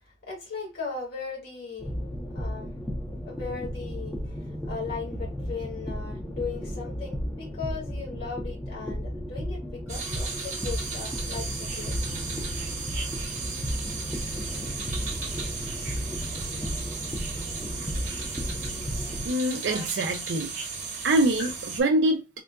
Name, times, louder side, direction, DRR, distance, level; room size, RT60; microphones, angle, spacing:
voice 1, 0.3-1.9 2.3-2.7 3.2-4.2 4.7-12.1 18.9-19.1 19.6-19.9 21.4-21.5, left 5 dB, 60° left, 1.7 m, -37 dB
sound 1, 1.8-19.3, equal, 5° left, 0.6 m, -34 dB
sound 2, 9.9-21.8, right 4 dB, 45° right, 1.0 m, -35 dB
voice 2, 19.2-20.5 21.0-22.2, right 1 dB, 70° right, 0.4 m, -24 dB
3.7 x 2.2 x 2.2 m
head